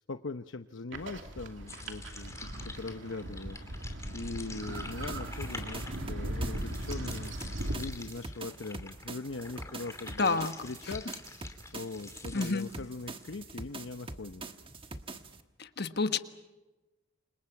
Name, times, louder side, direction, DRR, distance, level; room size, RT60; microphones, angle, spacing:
voice 1, 0.1-11.0 11.7-14.4, left 3 dB, 70° left, 8 dB, 0.8 m, -41 dB
sound 1, 0.9-7.8, right 1 dB, 70° right, 2.7 m, -38 dB
sound 2, 1.7-13.3, left 3 dB, 15° left, 2.7 m, -48 dB
sound 3, 4.7-15.4, right 2 dB, 25° right, 1.4 m, -44 dB
voice 2, 10.2-10.5 12.3-12.7 15.6-16.2, left 4 dB, 55° left, 9 dB, 1.4 m, -29 dB
29.0 x 26.0 x 5.8 m, 1.1 s
head